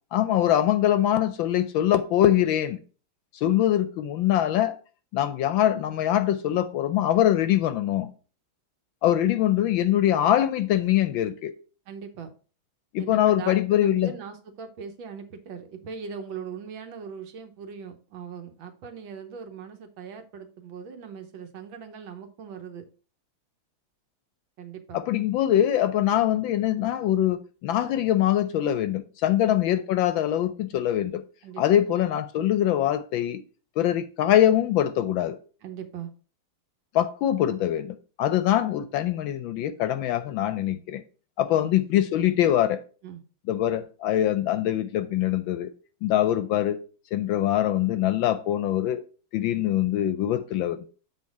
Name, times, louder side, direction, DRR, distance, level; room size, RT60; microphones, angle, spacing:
voice 1, 0.1-2.8 3.4-4.7 5.1-8.1 9.0-11.5 12.9-14.1 24.9-31.2 31.6-33.4 33.8-35.4 36.9-41.0 41.4-42.8 43.5-45.7 46.0-46.8 47.1-49.0 49.3-50.9, left 12 dB, 75° left, 1.2 m, -23 dB
voice 2, 11.9-12.3 13.0-22.8 24.6-25.0 29.3-29.4 31.4-31.8 35.6-36.1 41.5-41.7 43.0-43.2, right 6 dB, 65° right, 1.6 m, -40 dB
7.1 x 4.3 x 4.7 m
omnidirectional pair, 2.4 m